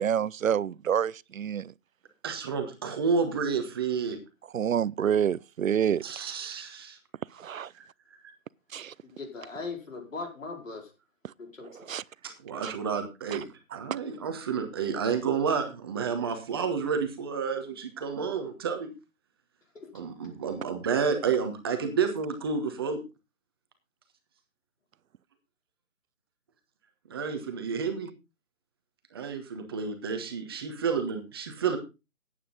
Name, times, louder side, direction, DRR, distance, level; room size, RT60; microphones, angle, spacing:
voice 1, 0.0-1.7 4.5-6.0 7.4-7.7 8.7-8.9 11.9-12.0 12.6-12.8 13.3-13.4, right 9 dB, 70° right, 0.6 m, -27 dB
voice 2, 2.2-4.2 6.0-7.0 7.8-7.9 12.2-18.9 19.9-23.0 27.1-28.1 29.1-31.8, right 6 dB, 15° right, 1.1 m, -30 dB
voice 3, 9.0-10.9 11.4-11.9 19.7-19.9, left 3 dB, 65° left, 4.5 m, -39 dB
12.5 x 9.4 x 3.8 m
figure-of-eight pair, 160°, 42 cm